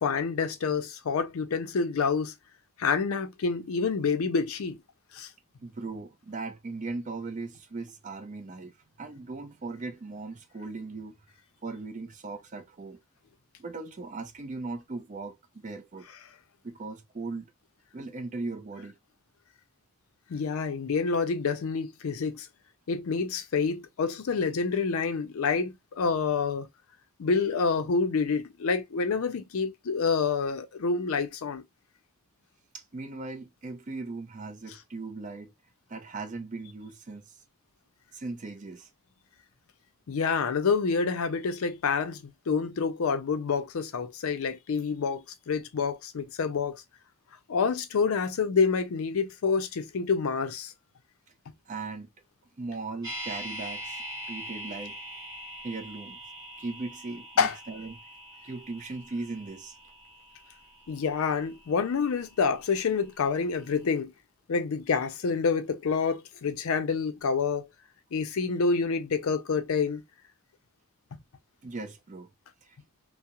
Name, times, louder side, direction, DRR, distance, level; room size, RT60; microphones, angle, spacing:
voice 1, 0.0-2.3 2.8-4.8 5.1-5.3 20.3-22.5 22.9-26.7 27.2-31.6 40.1-46.8 47.5-50.7 57.4-57.5 60.9-64.1 64.5-67.7 68.1-70.0, left 5 dB, 70° left, 0.4 m, -27 dB
voice 2, 5.6-11.2 11.6-13.0 13.6-15.4 15.6-16.1 16.6-17.5 17.9-19.0 32.7-35.5 35.9-37.4 38.1-38.9 51.7-52.1 52.6-55.0 55.6-56.2 56.6-58.0 58.4-59.8 71.6-72.3 72.6-72.8, right 3 dB, 35° right, 0.4 m, -38 dB
sound 1, 53.0-63.1 63.4-63.5, equal, 15° right, 1.0 m, -43 dB
2.3 x 2.0 x 2.8 m
head